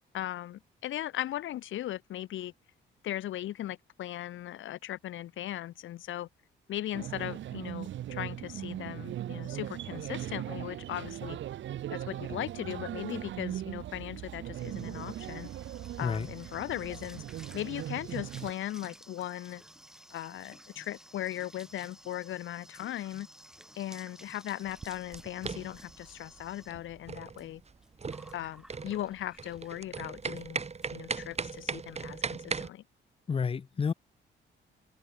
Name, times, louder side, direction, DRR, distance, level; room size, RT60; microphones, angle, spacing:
voice 1, 0.1-2.5 3.0-6.3 6.7-11.4 11.9-15.5 16.0-17.2 17.5-19.6 20.1-23.3 23.8-27.6 28.3-30.6 30.9-32.8, left 13 dB, 80° left, 3.6 m, -38 dB
sound 1, 6.9-18.5, right 12 dB, 70° right, 1.7 m, -39 dB
sound 2, 14.1-29.8 30.2-30.5 30.8-30.9 31.2-31.6, equal, 5° right, 6.4 m, -54 dB
sound 3, 24.6-32.7, right 5 dB, 35° right, 3.3 m, -38 dB
voice 2, 33.3-33.9, left 6 dB, 30° left, 0.6 m, -30 dB
cardioid pair, 90°, 20 cm